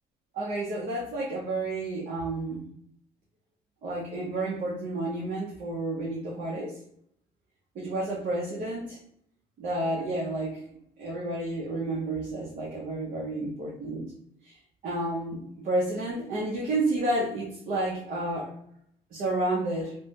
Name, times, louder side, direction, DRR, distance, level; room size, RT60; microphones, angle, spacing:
voice 1, 0.3-2.6 3.8-6.8 7.7-9.0 9.6-10.6 11.0-14.1 14.4-14.5 14.8-18.5 19.1-20.0, right 2 dB, 55° right, -4 dB, 0.8 m, -30 dB
3.1 x 2.2 x 2.8 m, 0.67 s
cardioid pair, 110°, 17 cm